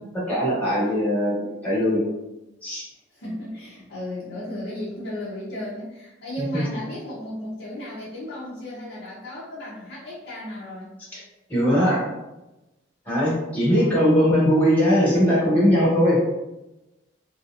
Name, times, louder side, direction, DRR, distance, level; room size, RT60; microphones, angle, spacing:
voice 1, 0.1-1.4 1.6-2.0 2.6-2.8 6.5-6.6 11.5-12.0 13.0-16.2, equal, 10° left, -7 dB, 1.2 m, -20 dB
voice 2, 3.1-10.9 13.6-14.1, left 1 dB, 60° left, -8 dB, 0.8 m, -35 dB
3.0 x 2.7 x 2.4 m, 0.99 s
head